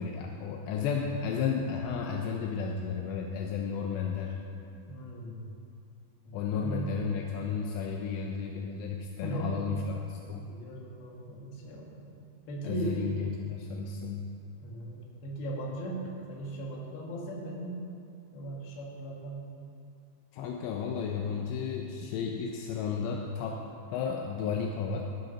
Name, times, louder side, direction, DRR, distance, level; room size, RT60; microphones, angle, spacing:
voice 1, 0.0-4.4 6.3-10.5 12.6-14.3 20.3-23.6 23.9-25.0, left 6 dB, 85° left, 1 dB, 2.8 m, -33 dB
voice 2, 4.9-5.4 6.2-7.0 9.2-9.6 10.4-12.1 12.5-13.1 14.6-16.0 16.3-17.7 18.3-19.4, right 1 dB, 65° left, -2 dB, 3.3 m, -38 dB
14.0 x 6.5 x 5.7 m, 2.5 s
omnidirectional pair, 4.9 m